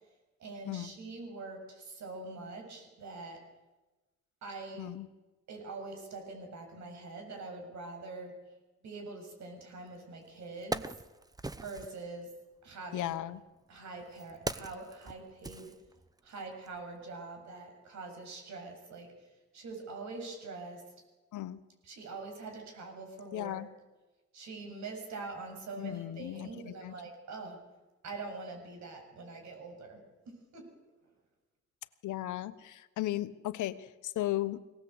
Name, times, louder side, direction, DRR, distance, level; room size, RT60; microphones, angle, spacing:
voice 1, 0.4-3.4 4.4-4.9 5.5-8.3 8.8-10.9 11.6-12.3 12.6-13.1 13.7-15.7 16.2-19.3 19.5-20.8 21.8-23.7 24.3-27.6 28.0-30.0 30.3-30.7, right 3 dB, 65° right, 3 dB, 7.3 m, -44 dB
Wood, 9.9-10.0 10.4-12.0 13.0-16.3 16.7-16.8, right 2 dB, 10° right, 0.8 m, -41 dB
voice 2, 12.9-13.4 21.3-21.6 23.3-23.7 25.8-26.9 32.0-34.6, left 14 dB, 80° left, 12 dB, 1.2 m, -36 dB
22.5 x 18.5 x 8.1 m, 1.1 s
cardioid pair, 90°, 30 cm